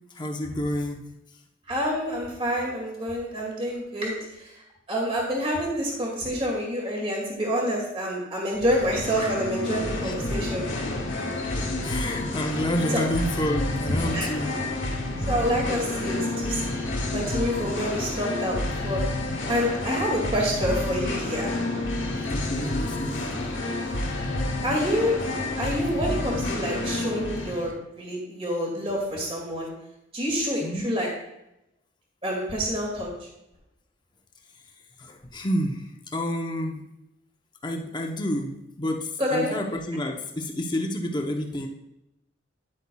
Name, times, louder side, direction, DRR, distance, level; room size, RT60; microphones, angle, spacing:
voice 1, 0.1-1.1 10.0-10.1 11.8-14.5 22.3-23.3 23.9-24.0 30.6-30.9 35.0-36.8 37.6-41.7, left 1 dB, 20° left, 2 dB, 0.7 m, -29 dB
voice 2, 1.7-4.5 4.9-10.7 12.9-13.0 13.9-14.3 15.3-16.6 17.1-19.0 19.5-21.5 24.6-25.2 25.5-29.7 30.1-31.1 32.2-33.1 39.2-39.5, equal, 30° right, -2 dB, 2.1 m, -27 dB
Singing, 8.5-27.7, left 2 dB, 65° left, 1.3 m, -29 dB
9.9 x 8.1 x 2.3 m, 0.87 s
head